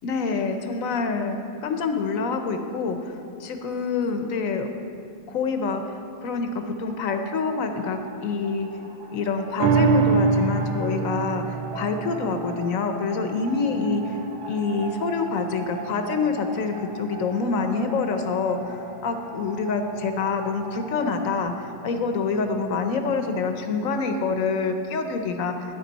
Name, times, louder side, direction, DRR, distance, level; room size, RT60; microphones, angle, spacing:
voice 1, 0.0-3.0 3.4-4.7 5.3-5.8 6.2-8.7 9.1-14.2 14.5-25.7, left 4 dB, 60° left, 6 dB, 0.9 m, -26 dB
sound 1, 6.8-21.4, right 3 dB, 45° right, 1.6 m, -41 dB
sound 2, 9.6-16.3 16.7-16.8, right 5 dB, 80° right, 1.4 m, -27 dB
13.0 x 10.0 x 4.0 m, 2.6 s
omnidirectional pair, 2.1 m